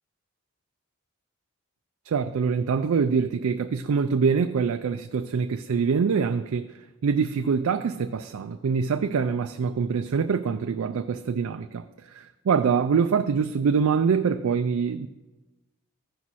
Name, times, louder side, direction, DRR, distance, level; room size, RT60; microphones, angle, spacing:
voice 1, 2.1-6.7 7.0-11.8 12.1-15.1, right 6 dB, 80° right, 0.4 m, -24 dB
15.0 x 6.1 x 4.1 m
head